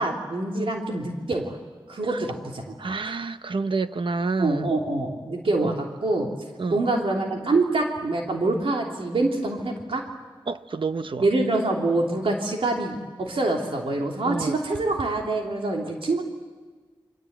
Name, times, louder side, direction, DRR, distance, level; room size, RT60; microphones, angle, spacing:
voice 1, 0.0-1.6 1.9-2.9 4.4-6.3 6.7-10.0 11.2-16.2, right 2 dB, 85° right, 3.1 m, -25 dB
voice 2, 2.8-4.7 5.6-5.8 6.6-6.8 10.5-11.3 14.2-14.6, right 4 dB, 65° right, 1.0 m, -28 dB
28.0 x 25.0 x 8.2 m
wide cardioid pair, 95°, 9 cm